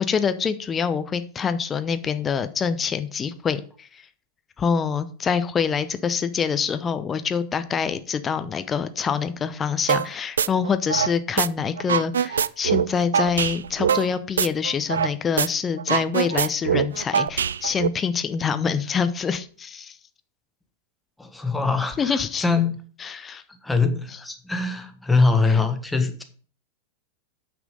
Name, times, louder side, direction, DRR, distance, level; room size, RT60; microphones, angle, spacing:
voice 1, 0.1-4.0 4.6-20.0 22.0-22.4 23.0-23.4 25.5-25.6, left 6 dB, 20° left, 11 dB, 0.7 m, -25 dB
sound 1, 9.9-10.1 10.4-11.5 11.8-15.1 15.4-15.5 15.8-17.9, right 7 dB, 65° right, 0.3 m, -23 dB
voice 2, 21.2-22.8 23.5-26.2, left 4 dB, 5° left, 6 dB, 1.4 m, -23 dB
9.2 x 6.0 x 5.2 m, 0.43 s
figure-of-eight pair, 90°, 0 cm